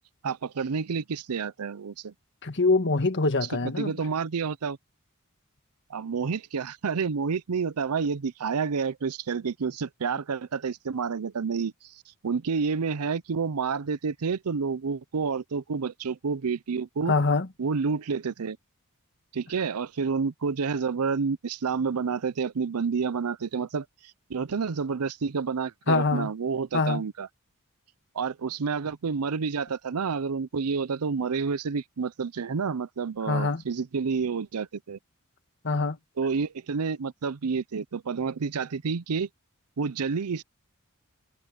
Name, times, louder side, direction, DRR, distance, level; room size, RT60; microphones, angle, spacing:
voice 1, 0.2-2.1 3.6-4.8 5.9-17.1 17.6-18.6 19.3-23.9 24.3-27.3 28.1-35.0 36.2-39.3 39.8-40.4, right 5 dB, 90° right, 0.6 m, -29 dB
voice 2, 2.4-3.9 17.1-17.5 25.9-26.3 26.7-27.0 33.3-33.6 35.6-36.0, left 3 dB, 55° left, 1.8 m, -24 dB
head